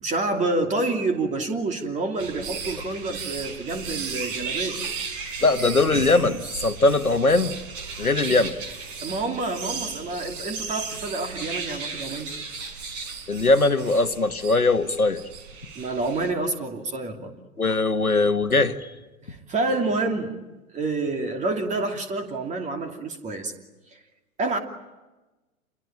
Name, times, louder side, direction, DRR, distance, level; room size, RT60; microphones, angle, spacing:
voice 1, 0.0-4.8 9.0-12.3 15.7-17.3 19.2-20.4 20.7-23.5 24.4-24.6, right 2 dB, 15° right, 5 dB, 2.8 m, -28 dB
sound 1, 2.2-16.3, right 5 dB, 40° right, 5.0 m, -35 dB
voice 2, 5.4-7.6 8.0-8.6 13.3-15.2 17.6-18.9, left 3 dB, 85° left, 8 dB, 1.7 m, -21 dB
29.0 x 22.0 x 8.9 m, 1.1 s
figure-of-eight pair, 110°, 42 cm